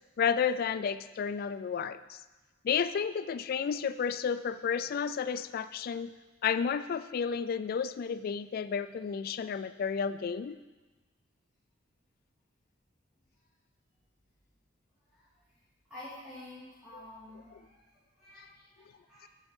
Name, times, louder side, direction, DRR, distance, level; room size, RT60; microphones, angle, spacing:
voice 1, 0.2-2.2 2.6-6.1 6.4-10.6 16.9-17.0, left 6 dB, 50° left, 14 dB, 0.3 m, -31 dB
voice 2, 15.9-19.3, left 1 dB, 5° right, -11 dB, 2.3 m, -50 dB
9.9 x 6.6 x 4.5 m, 1.2 s
head